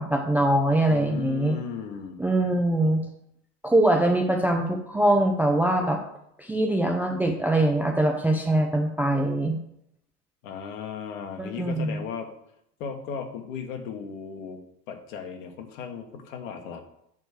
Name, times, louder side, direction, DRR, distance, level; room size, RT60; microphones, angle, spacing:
voice 1, 0.0-1.6 2.2-3.0 3.6-6.0 6.4-9.6 11.4-12.0, right 1 dB, 5° right, 2 dB, 0.5 m, -23 dB
voice 2, 0.9-2.2 10.4-12.3 12.8-14.6 14.9-16.8, left 6 dB, 55° left, 5 dB, 1.5 m, -36 dB
9.2 x 3.3 x 6.5 m, 0.75 s
figure-of-eight pair, 80°, 47 cm